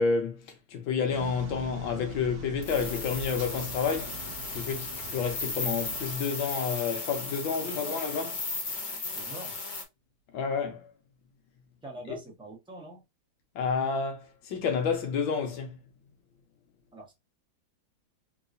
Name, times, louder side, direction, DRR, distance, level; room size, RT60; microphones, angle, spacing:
voice 1, 0.0-4.2 4.5-8.3 10.3-10.9 12.1-12.2 13.6-15.8, left 5 dB, 80° left, 1.6 m, -30 dB
sound 1, 1.1-6.1, right 3 dB, 80° right, 0.5 m, -43 dB
sound 2, 2.6-9.8, left 3 dB, 55° left, 1.4 m, -36 dB
voice 2, 7.6-8.0 9.1-9.6 11.8-13.0 16.9-17.1, right 1 dB, 5° right, 0.8 m, -43 dB
3.7 x 2.9 x 2.5 m
omnidirectional pair, 2.1 m